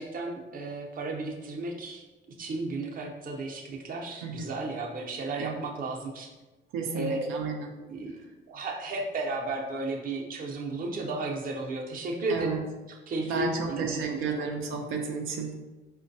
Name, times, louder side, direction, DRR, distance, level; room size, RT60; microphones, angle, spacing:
voice 1, 0.0-2.0 2.4-6.3 6.9-7.4 7.9-12.5 12.9-14.2, right 2 dB, 45° right, 1 dB, 0.6 m, -34 dB
voice 2, 6.7-7.7 12.3-12.6 13.2-15.6, right 5 dB, 90° right, 2 dB, 0.5 m, -32 dB
4.4 x 2.2 x 2.6 m, 1.1 s
cardioid pair, 90°, 20 cm